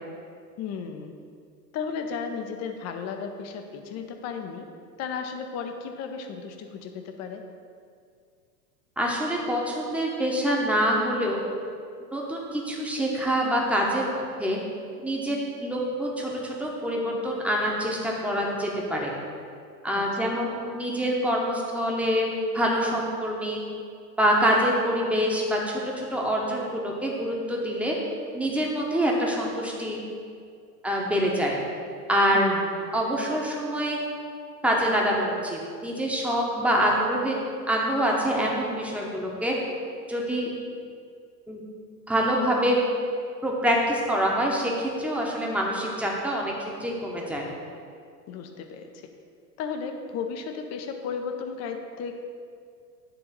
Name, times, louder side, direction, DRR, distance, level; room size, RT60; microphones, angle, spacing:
voice 1, 0.6-1.1 1.7-4.7 5.0-7.5 19.9-20.4 32.3-32.8 48.3-49.1 49.6-52.2, left 6 dB, 30° left, 5 dB, 0.8 m, -34 dB
voice 2, 9.0-11.4 12.1-14.6 15.0-19.1 19.8-22.3 22.5-23.6 24.2-28.0 28.3-30.0 30.8-31.5 32.1-32.5 32.9-34.0 34.6-37.4 37.7-39.5 40.1-40.5 41.5-41.6 42.1-42.8 43.4-47.4, equal, 5° right, -2 dB, 1.1 m, -25 dB
10.0 x 3.6 x 5.2 m, 2.3 s
hypercardioid pair, 100°, 49 cm